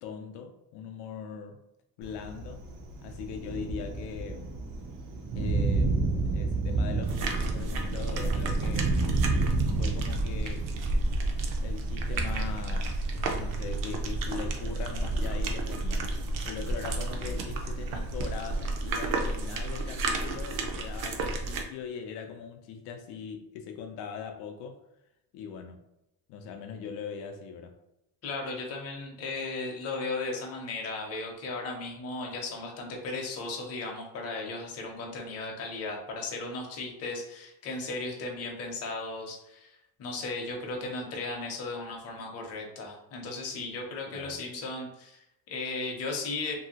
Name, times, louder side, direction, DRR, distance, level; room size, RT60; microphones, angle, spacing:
voice 1, 0.0-1.6 2.0-2.7 3.0-4.5 5.3-6.1 6.3-9.0 9.8-10.7 11.6-16.1 16.4-24.8 25.3-25.8 26.3-27.8 44.1-44.4, left 6 dB, 85° left, 4 dB, 0.5 m, -41 dB
Thunder, 2.0-19.5, right 3 dB, 80° right, 0.8 m, -33 dB
sound 1, 7.0-21.6, right 2 dB, 55° right, 0.5 m, -31 dB
sound 2, 13.1-19.4, right 12 dB, ahead, 0.4 m, -49 dB
voice 2, 28.2-46.5, left 3 dB, 40° left, 1 dB, 0.6 m, -36 dB
2.7 x 2.7 x 2.8 m, 0.87 s
cardioid pair, 175°, 39 cm